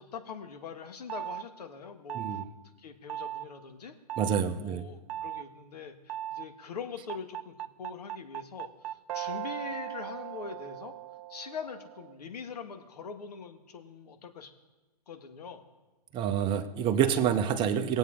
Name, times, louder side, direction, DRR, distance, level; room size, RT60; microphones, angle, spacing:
voice 1, 0.0-2.4 2.8-3.9 4.6-10.9 11.3-14.5 15.1-15.6, left 6 dB, 70° left, 7 dB, 1.5 m, -43 dB
sound 1, 1.1-1.4 2.1-2.5 3.1-3.5 4.1-4.4 5.1-5.4 6.1-6.5 7.1-12.2, right 12 dB, 55° right, 0.4 m, -38 dB
voice 2, 2.1-2.4 4.2-4.8 16.1-18.0, right 8 dB, 25° right, 7 dB, 0.8 m, -27 dB
19.0 x 8.0 x 3.7 m, 1.1 s
hypercardioid pair, 130°, 21 cm